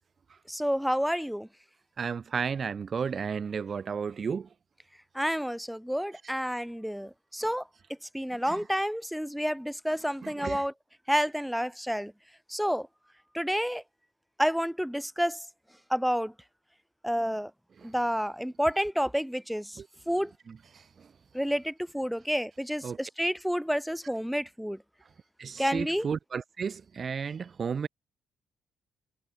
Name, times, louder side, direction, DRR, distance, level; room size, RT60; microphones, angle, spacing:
voice 1, 0.5-1.5 5.1-7.6 8.1-10.7 11.1-12.1 12.5-12.9 13.3-13.8 14.4-15.4 15.9-16.3 17.0-17.5 17.8-20.3 21.3-24.8 25.6-26.1, equal, ahead, 4.1 m, -29 dB
voice 2, 2.0-4.5 8.5-8.6 10.2-10.6 17.8-17.9 19.8-19.9 20.5-21.1 22.8-23.0 25.4-27.9, right 6 dB, 45° right, 3.4 m, -33 dB
cardioid pair, 90°, 0 cm